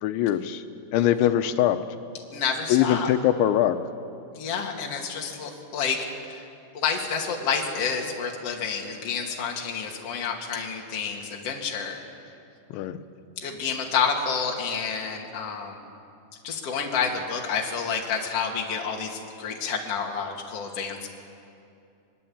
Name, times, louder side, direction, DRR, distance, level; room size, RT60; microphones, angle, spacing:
voice 1, 0.0-0.6 0.9-1.8 2.7-3.8 12.7-13.0, left 11 dB, 90° left, 9 dB, 3.2 m, -22 dB
voice 2, 2.3-3.1 4.3-6.5 6.7-12.0 13.4-15.8 16.4-21.1, left 6 dB, 40° left, 0 dB, 2.7 m, -29 dB
22.5 x 22.5 x 8.8 m, 2.6 s
omnidirectional pair, 5.3 m